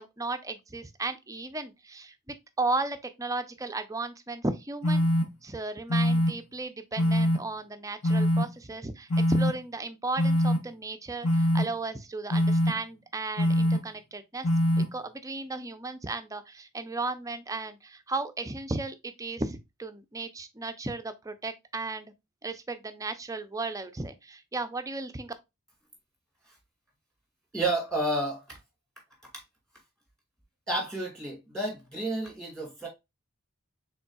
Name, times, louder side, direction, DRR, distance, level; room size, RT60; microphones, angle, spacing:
voice 1, 0.0-5.1 5.4-14.5 14.8-22.1 22.4-25.3, right 3 dB, 15° right, 0.5 m, -35 dB
sound 1, 4.8-5.2 5.9-6.3 7.0-7.4 8.0-8.4 9.1-9.5 10.2-10.6 11.2-11.6 12.3-12.7 13.4-13.8 14.4-14.8, equal, 85° left, 1.1 m, -23 dB
voice 2, 27.5-28.6 30.7-32.9, right 1 dB, ahead, 2.1 m, -30 dB
5.2 x 3.7 x 2.3 m
head